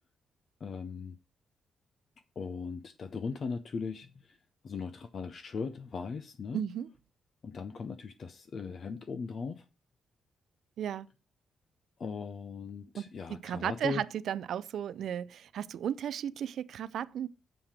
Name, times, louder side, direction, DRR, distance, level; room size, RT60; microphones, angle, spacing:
voice 1, 0.6-1.2 2.4-4.4 4.6-6.6 7.4-9.6 12.0-14.0, left 5 dB, 35° left, 0.5 m, -39 dB
voice 2, 6.5-6.9 10.8-11.1 13.0-13.1 13.3-17.3, right 9 dB, 60° right, 0.3 m, -34 dB
7.3 x 5.0 x 5.8 m
cardioid pair, 175°, 0 cm